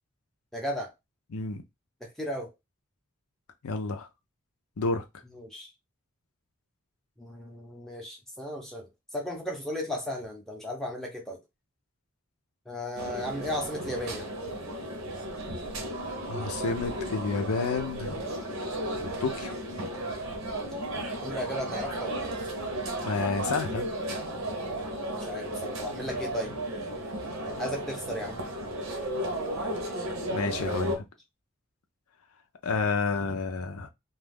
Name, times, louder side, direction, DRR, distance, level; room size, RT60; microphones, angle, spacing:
voice 1, 0.5-0.9 2.0-2.5 5.3-5.7 7.2-8.9 9.1-11.4 12.7-14.3 21.2-22.3 25.2-26.5 27.6-28.4, left 1 dB, ahead, 0.6 m, -35 dB
voice 2, 1.3-1.6 3.6-4.1 4.8-5.0 16.3-18.3 19.2-19.5 23.0-23.9 30.3-31.0 32.6-33.9, left 4 dB, 85° left, 0.5 m, -30 dB
sound 1, 13.0-31.0, right 1 dB, 70° right, 0.8 m, -34 dB
2.4 x 2.3 x 3.4 m
head